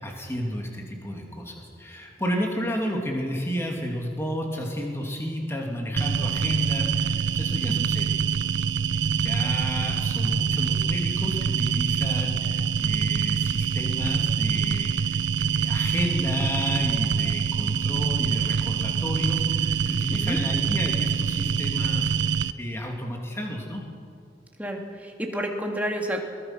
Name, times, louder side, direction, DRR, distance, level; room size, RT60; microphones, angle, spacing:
voice 1, 0.0-8.2 9.1-23.8, equal, 15° left, 0 dB, 2.8 m, -31 dB
sound 1, 6.0-22.5, right 6 dB, 85° right, 0.6 m, -25 dB
voice 2, 24.6-26.2, equal, 10° right, 1 dB, 2.3 m, -30 dB
22.0 x 21.0 x 6.1 m, 2.3 s
head